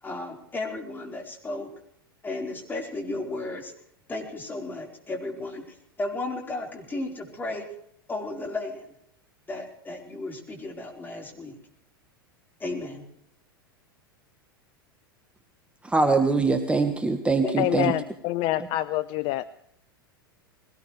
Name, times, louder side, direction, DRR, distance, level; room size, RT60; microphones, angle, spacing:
voice 1, 0.0-1.7 2.2-3.7 4.1-7.6 8.1-8.9 9.5-11.6 12.6-13.0 17.4-17.8, left 2 dB, 15° left, 4.4 m, -34 dB
voice 2, 15.8-17.9, right 3 dB, 10° right, 1.4 m, -23 dB
voice 3, 17.6-19.5, left 15 dB, 45° left, 0.6 m, -26 dB
21.0 x 18.0 x 3.3 m
figure-of-eight pair, 90°, 12 cm